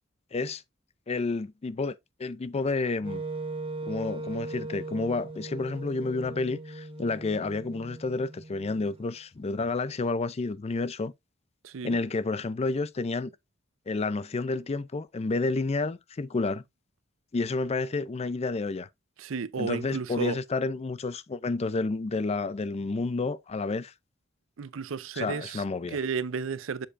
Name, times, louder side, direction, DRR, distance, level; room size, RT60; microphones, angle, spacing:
voice 1, 0.3-0.6 1.1-3.2 3.8-11.1 11.8-13.3 13.9-16.6 17.3-18.9 19.6-23.9 25.2-26.0, left 3 dB, 30° left, 0.4 m, -30 dB
Wind instrument woodwind instrument, 3.0-9.1, right 2 dB, 25° right, 0.9 m, -39 dB
voice 2, 11.6-12.0 19.2-20.4 24.6-26.9, right 5 dB, 80° right, 0.5 m, -33 dB
7.5 x 6.6 x 2.5 m
head